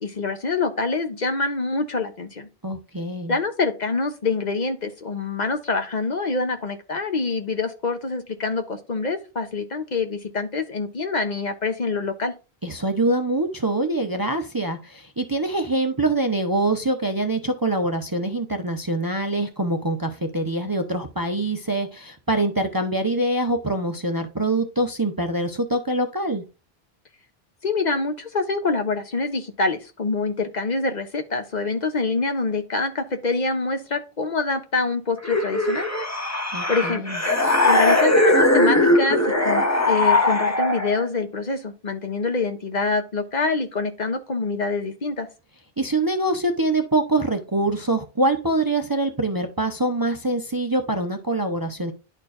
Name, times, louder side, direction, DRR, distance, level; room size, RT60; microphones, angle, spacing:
voice 1, 0.0-2.5 3.3-12.3 27.6-36.2 36.7-37.2 37.6-39.2 39.4-45.3, left 3 dB, 45° left, 7 dB, 0.9 m, -25 dB
voice 2, 2.6-3.3 12.6-26.4 36.5-37.2 45.8-51.9, right 2 dB, 25° right, 5 dB, 0.6 m, -24 dB
sound 1, 35.2-41.1, left 1 dB, 15° left, 0.8 m, -20 dB
11.0 x 4.4 x 2.5 m, 0.31 s
omnidirectional pair, 1.1 m